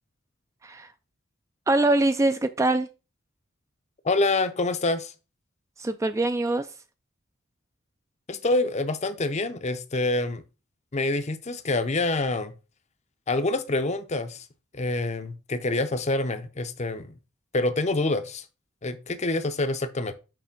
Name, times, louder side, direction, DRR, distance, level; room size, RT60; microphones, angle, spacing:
voice 1, 1.7-2.9 5.8-6.7, right 2 dB, 15° right, 0.3 m, -23 dB
voice 2, 4.0-5.1 8.3-10.4 10.9-12.5 13.3-14.5 14.7-17.1 17.5-18.4 18.8-20.1, left 2 dB, 30° left, 0.6 m, -26 dB
6.8 x 3.2 x 5.8 m
head